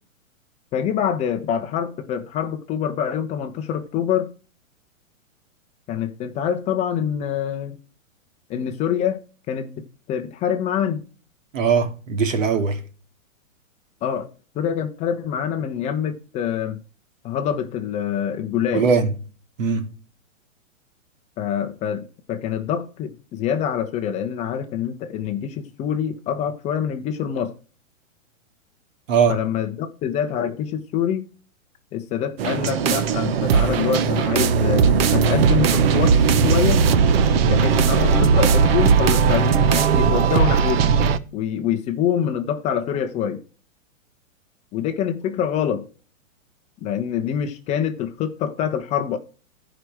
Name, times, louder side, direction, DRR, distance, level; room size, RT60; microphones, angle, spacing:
voice 1, 0.7-4.3 5.9-7.8 8.5-9.2 9.5-11.0 14.0-14.3 14.5-16.8 17.2-18.9 21.4-22.0 22.3-27.5 29.3-31.3 31.9-34.8 35.1-36.8 37.5-40.9 41.3-43.4 44.7-45.8 46.8-49.2, left 8 dB, 15° left, 0.8 m, -25 dB
voice 2, 11.5-12.8 18.7-19.1 19.6-19.8 29.1-29.4, right 5 dB, 70° right, 2.6 m, -20 dB
sound 1, 32.4-41.2, right 6 dB, 45° right, 1.0 m, -18 dB
15.0 x 5.1 x 4.6 m
hypercardioid pair, 155°, 40 cm